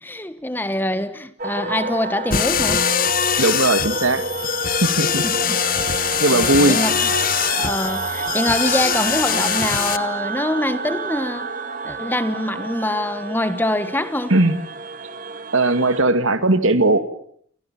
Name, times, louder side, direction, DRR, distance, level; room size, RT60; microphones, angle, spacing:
voice 1, 0.0-2.9 5.2-5.6 6.7-7.1 7.5-11.5 11.8-14.3, left 1 dB, 10° left, 1.2 m, -24 dB
sound 1, 1.4-16.0, right 4 dB, 40° right, 1.8 m, -29 dB
sound 2, 2.3-10.0, left 8 dB, 45° left, 1.3 m, -22 dB
voice 2, 3.4-4.2 4.8-5.2 6.2-6.8 14.3-14.5 15.5-17.1, right 2 dB, 80° right, 2.2 m, -18 dB
28.5 x 28.0 x 7.4 m
head